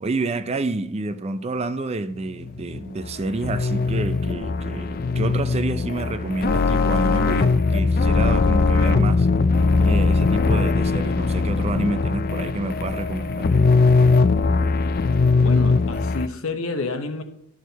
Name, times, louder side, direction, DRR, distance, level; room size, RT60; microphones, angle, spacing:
voice 1, 0.0-9.3 9.8-13.5, right 2 dB, 30° right, 0.4 m, -28 dB
sound 1, 2.4-16.3, left 4 dB, 40° left, 0.4 m, -20 dB
voice 2, 15.4-17.2, left 3 dB, 65° left, 0.9 m, -29 dB
11.0 x 6.4 x 4.0 m
head